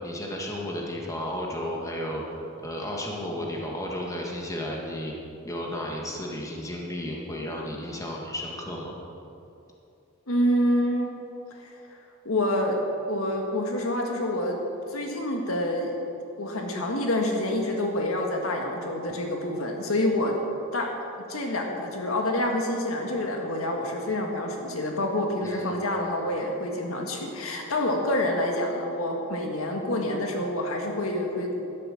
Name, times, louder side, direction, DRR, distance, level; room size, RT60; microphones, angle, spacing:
voice 1, 0.0-2.2 2.6-5.2 5.4-8.9 25.4-25.7, left 1 dB, 15° left, -1 dB, 1.8 m, -33 dB
voice 2, 10.3-11.2 11.5-12.0 12.3-12.8 13.1-14.6 14.9-15.9 16.4-20.3 20.7-20.9 21.3-31.6, left 1 dB, 80° left, 1 dB, 1.8 m, -27 dB
12.0 x 10.5 x 6.5 m, 2.8 s
head